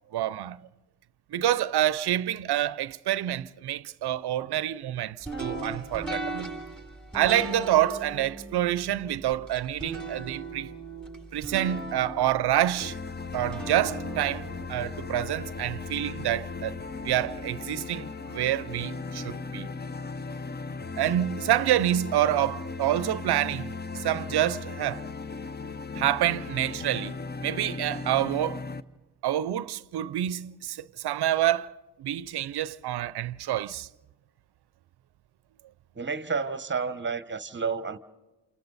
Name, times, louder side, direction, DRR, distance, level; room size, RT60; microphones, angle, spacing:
voice 1, 0.1-0.6 1.3-6.5 7.1-10.7 11.3-13.0 13.3-16.7 17.0-19.7 21.0-25.0 25.9-27.1 27.4-28.6 29.2-31.7 32.0-33.9, right 12 dB, 65° right, 0.6 m, -27 dB
sound 1, 5.2-16.3, right 2 dB, ahead, 6.7 m, -38 dB
sound 2, 12.8-28.8, left 4 dB, 25° left, 0.8 m, -37 dB
voice 2, 36.0-38.0, right 5 dB, 25° right, 1.1 m, -30 dB
28.5 x 27.5 x 4.0 m
cardioid pair, 55°, 42 cm